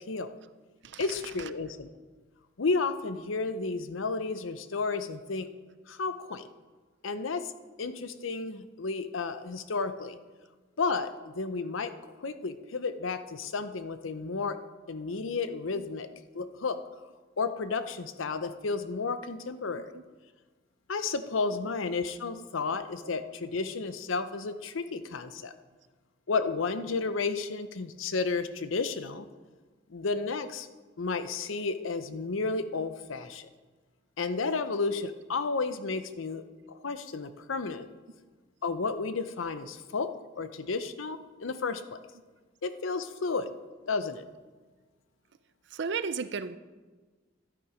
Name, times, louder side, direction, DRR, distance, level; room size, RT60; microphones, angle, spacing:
voice 1, 1.0-1.9 2.6-5.5 5.9-6.4 7.0-7.5 7.8-10.2 10.8-11.9 12.2-14.6 14.9-16.1 16.3-16.8 17.4-19.9 20.9-25.5 26.3-29.3 29.9-30.7 31.0-33.4 34.2-36.4 36.7-37.9 38.6-40.1 40.4-42.0 42.6-43.5 43.9-44.2, left 4 dB, 85° left, 0.7 m, -32 dB
voice 2, 45.7-46.6, right 5 dB, 60° right, 0.6 m, -34 dB
12.0 x 9.7 x 5.0 m
head